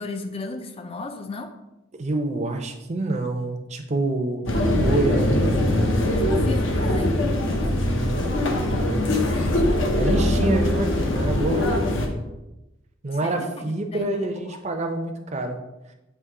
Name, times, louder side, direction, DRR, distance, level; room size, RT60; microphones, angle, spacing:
voice 1, 0.0-1.5 6.3-7.3 13.2-14.6, left 3 dB, 30° left, 7 dB, 0.4 m, -35 dB
voice 2, 2.0-4.5 4.8-5.4 7.8-9.1 9.4-11.8 13.0-15.6, right 2 dB, 35° right, 5 dB, 0.6 m, -27 dB
sound 1, 4.5-12.1, left 1 dB, 65° left, 0.9 m, -22 dB
7.2 x 3.0 x 4.8 m, 0.97 s
head